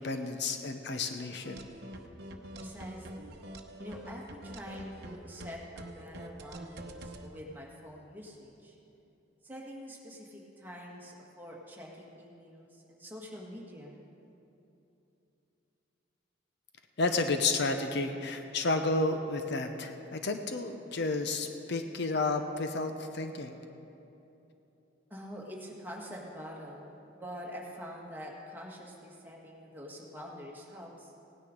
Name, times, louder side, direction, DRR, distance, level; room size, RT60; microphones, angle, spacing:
voice 1, 0.0-1.7 17.0-23.6, left 3 dB, 60° left, 7 dB, 0.7 m, -31 dB
sound 1, 1.4-7.3, right 1 dB, 55° right, 0.9 m, -45 dB
voice 2, 2.6-3.4 3.8-8.8 9.4-13.9 25.1-31.1, equal, 10° right, -3 dB, 1.6 m, -46 dB
17.0 x 9.8 x 5.2 m, 2.9 s
head